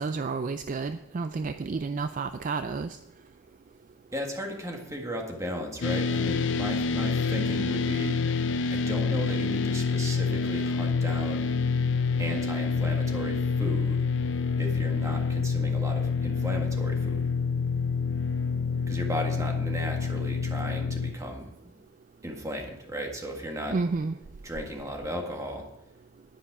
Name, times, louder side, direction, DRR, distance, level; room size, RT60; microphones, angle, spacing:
voice 1, 0.0-3.0 23.7-24.1, right 4 dB, 40° right, 10 dB, 0.3 m, -30 dB
voice 2, 4.1-8.2 8.7-11.5 12.2-14.0 14.6-17.3 18.9-21.5 22.2-23.8 24.4-25.6, equal, 15° right, 2 dB, 1.7 m, -35 dB
sound 1, 5.8-21.1, left 5 dB, 65° left, 0.6 m, -27 dB
10.5 x 10.0 x 4.8 m, 0.88 s
head